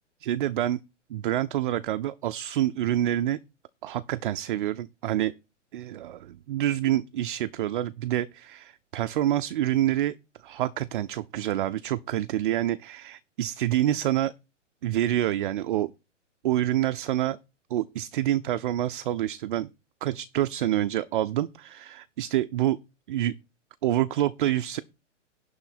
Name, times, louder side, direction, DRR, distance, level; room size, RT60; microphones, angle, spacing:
voice 1, 0.2-0.8 1.1-3.4 3.8-5.3 5.7-10.2 10.4-14.3 14.8-15.9 16.4-17.4 17.7-19.7 20.0-22.8 23.1-23.3 23.8-24.8, right 13 dB, 45° right, 0.5 m, -27 dB
11.5 x 3.8 x 7.2 m
figure-of-eight pair, 115°, 37 cm